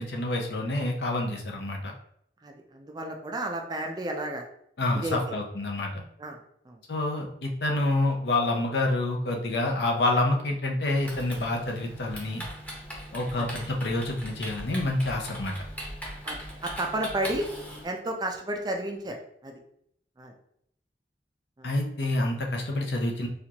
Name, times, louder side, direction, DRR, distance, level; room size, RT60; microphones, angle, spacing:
voice 1, 0.0-1.9 4.8-6.0 6.9-12.4 13.1-15.5 21.6-23.3, left 2 dB, 65° left, 1 dB, 0.7 m, -27 dB
voice 2, 2.4-4.4 4.9-5.2 6.2-6.4 6.7-6.8 13.4-13.5 16.2-16.4 16.6-17.5 17.8-19.2 19.4-19.5 20.2-20.3 21.6-21.7, right 1 dB, 25° right, 2 dB, 0.4 m, -32 dB
Typing, 11.0-17.8, equal, 10° left, 0.8 m, -40 dB
4.2 x 2.4 x 2.8 m, 0.70 s
head